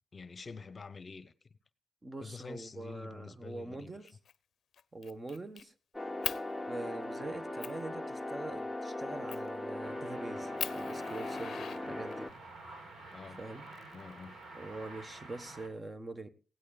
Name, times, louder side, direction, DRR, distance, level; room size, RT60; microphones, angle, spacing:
voice 1, 0.1-1.3 2.2-3.9 13.1-13.4 13.9-14.4, left 4 dB, 45° left, 0.8 m, -47 dB
voice 2, 2.0-4.2 4.9-5.7 6.7-12.3 13.4-13.6 14.5-16.3, right 2 dB, 25° right, 1.2 m, -43 dB
Fire, 4.1-4.3 4.7-5.6 6.2-6.4 7.0-7.1 7.6-7.8 9.3-9.6 10.1-10.2 10.6-12.4 13.4-14.4, left 8 dB, 85° left, 0.5 m, -40 dB
sound 1, 5.9-12.3, left 1 dB, 5° left, 1.0 m, -39 dB
sound 2, 9.8-15.7, right 2 dB, 85° right, 4.0 m, -50 dB
17.0 x 15.5 x 2.4 m
wide cardioid pair, 105°, 0 cm